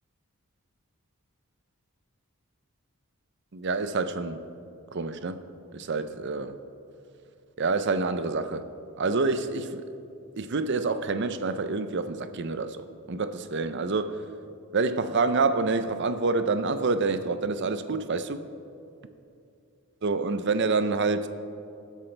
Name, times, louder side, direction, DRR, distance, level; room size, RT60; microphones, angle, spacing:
voice 1, 3.5-4.4 4.9-5.4 5.7-6.6 7.6-8.6 9.0-9.8 10.4-14.3 14.7-18.4 20.0-21.3, right 3 dB, 50° right, 0.5 m, -27 dB
19.5 x 8.2 x 3.3 m
head